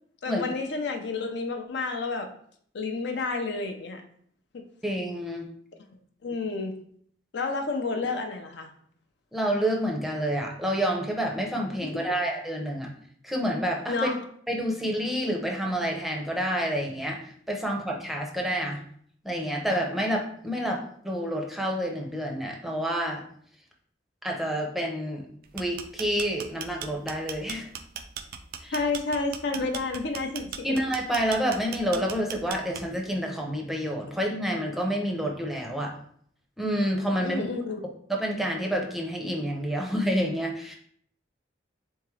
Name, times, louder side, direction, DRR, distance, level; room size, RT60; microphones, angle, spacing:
voice 1, 0.2-2.3 2.7-4.0 4.5-4.6 6.2-6.8 7.3-8.7 11.8-12.0 13.9-14.2 28.7-30.8 37.2-37.8, left 3 dB, 65° left, 4 dB, 0.6 m, -30 dB
voice 2, 4.8-5.5 9.3-12.9 13.2-14.1 14.5-18.8 19.2-23.2 24.2-25.3 25.5-27.7 28.6-28.7 29.6-29.7 30.6-35.9 36.6-37.5 38.1-40.7, equal, ahead, 0 dB, 0.6 m, -28 dB
sound 1, 25.4-33.1, right 8 dB, 55° right, 0.4 m, -38 dB
3.7 x 3.6 x 3.2 m, 0.62 s
head